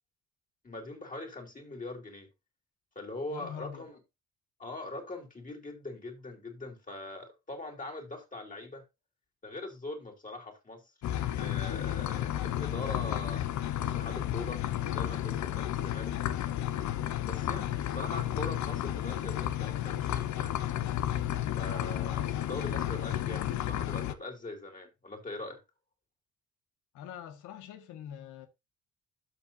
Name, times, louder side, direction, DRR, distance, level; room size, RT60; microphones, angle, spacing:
voice 1, 0.6-2.3 2.9-4.0 4.6-8.8 9.4-10.9 11.2-13.4 13.9-14.6 14.9-16.1 17.3-20.5 21.6-25.6, left 2 dB, 25° left, 2.9 m, -42 dB
voice 2, 3.3-3.9 26.9-28.5, left 9 dB, 90° left, 1.5 m, -44 dB
sound 1, 11.0-24.1, left 12 dB, 70° left, 0.8 m, -32 dB
12.5 x 5.7 x 2.6 m
cardioid pair, 90°, 30 cm